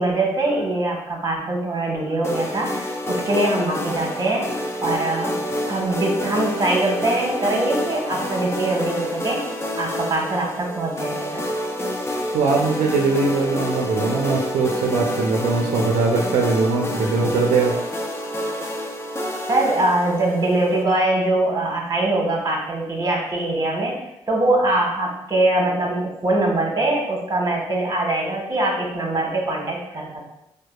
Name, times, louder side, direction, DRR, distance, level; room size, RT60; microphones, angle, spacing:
voice 1, 0.0-5.4 5.7-9.4 9.8-11.4 19.5-30.2, right 2 dB, 30° right, -1 dB, 1.2 m, -22 dB
sound 1, 2.2-20.8, equal, 20° left, 0.6 m, -28 dB
voice 2, 12.3-17.8, right 4 dB, 75° right, -1 dB, 0.4 m, -21 dB
4.5 x 2.3 x 2.3 m, 0.83 s
supercardioid pair, 55°, 12 cm